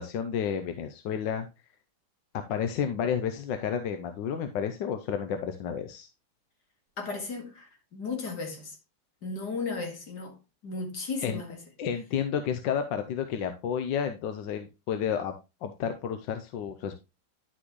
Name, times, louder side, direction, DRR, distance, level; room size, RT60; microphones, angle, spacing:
voice 1, 0.0-1.5 2.5-6.1 11.2-11.4 11.8-15.3 15.6-17.0, left 8 dB, 65° left, 1.2 m, -31 dB
voice 2, 7.0-8.7 9.2-10.3 10.6-11.6, left 4 dB, 50° left, 2.5 m, -35 dB
10.0 x 6.1 x 3.1 m
omnidirectional pair, 2.4 m